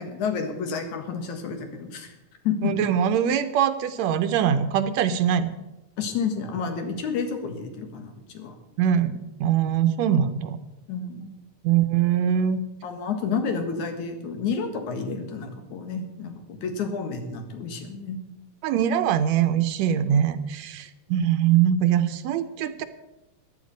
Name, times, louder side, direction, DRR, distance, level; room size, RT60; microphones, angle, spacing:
voice 1, 0.0-2.1 2.4-2.7 6.0-8.5 10.9-11.3 12.8-18.2, left 5 dB, 85° left, 5 dB, 3.0 m, -30 dB
voice 2, 2.6-5.5 8.8-10.6 11.6-12.6 18.6-22.8, right 9 dB, 75° right, 12 dB, 1.9 m, -22 dB
14.5 x 10.5 x 5.2 m, 0.97 s
omnidirectional pair, 3.3 m